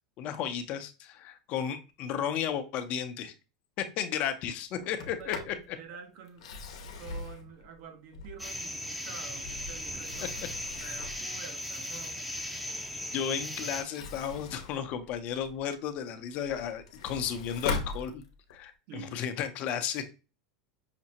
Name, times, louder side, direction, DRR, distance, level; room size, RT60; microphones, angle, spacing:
voice 1, 0.2-3.3 3.8-5.5 10.8-10.9 13.1-18.2 18.5-20.1, left 8 dB, 50° left, 0.6 m, -34 dB
Sliding door, 4.8-5.6 6.3-8.6 9.2-11.3 13.7-15.7 16.1-18.6, left 4 dB, 85° left, 0.8 m, -40 dB
voice 2, 5.2-12.3 18.9-19.3, right 7 dB, 55° right, 0.8 m, -48 dB
sound 1, 8.4-13.8, left 1 dB, ahead, 0.6 m, -37 dB
5.8 x 2.1 x 2.8 m
supercardioid pair, 115°, 3 cm